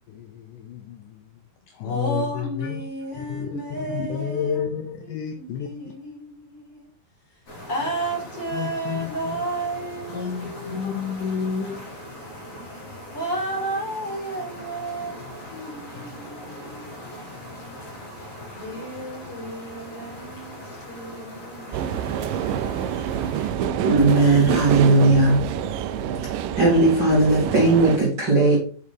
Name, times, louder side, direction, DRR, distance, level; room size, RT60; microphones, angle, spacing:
voice 1, 0.1-1.1 1.7-2.8 3.2-5.7 8.5-9.4 10.1-11.9, left 7 dB, 80° left, 1.9 m, -30 dB
voice 2, 1.8-6.9 7.7-10.8 13.1-17.1 18.5-22.2, right 2 dB, 25° left, 5.0 m, -33 dB
sound 1, 7.5-23.5, equal, 50° left, 4.9 m, -40 dB
sound 2, 21.7-28.0, right 9 dB, 85° right, 1.9 m, -26 dB
voice 3, 23.8-25.4 26.2-26.3 26.6-28.6, right 2 dB, 30° right, 2.6 m, -17 dB
8.5 x 6.9 x 3.4 m
omnidirectional pair, 4.6 m